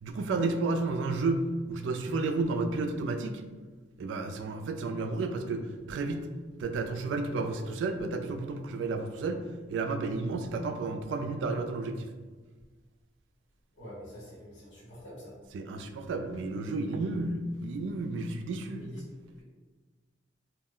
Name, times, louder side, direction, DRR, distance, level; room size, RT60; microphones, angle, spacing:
voice 1, 0.0-3.4 4.0-6.3 6.6-9.4 9.7-12.1 15.5-18.8, right 3 dB, 75° right, 6 dB, 0.3 m, -32 dB
voice 2, 13.7-15.4 18.8-19.0 19.4-19.5, equal, 85° left, -7 dB, 1.2 m, -45 dB
2.3 x 2.0 x 3.6 m, 1.4 s
head